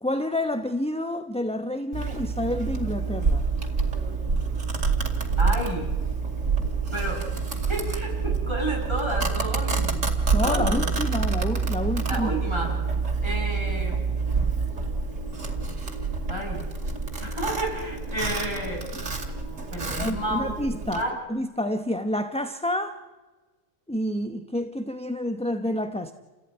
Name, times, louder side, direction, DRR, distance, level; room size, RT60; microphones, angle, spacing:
voice 1, 0.0-3.5 10.3-12.3 20.0-21.0 21.3-23.0 23.9-26.1, left 1 dB, 5° left, 0.8 m, -28 dB
Domestic sounds home sounds, 1.9-21.0, right 4 dB, 80° right, 3.0 m, -27 dB
voice 2, 5.4-5.9 6.9-7.3 7.5-11.2 12.1-12.7 13.2-14.0 16.3-16.6 17.2-18.9 19.7-20.5 20.9-21.1, right 1 dB, 20° right, 7.1 m, -31 dB
29.0 x 16.5 x 9.7 m
omnidirectional pair, 1.3 m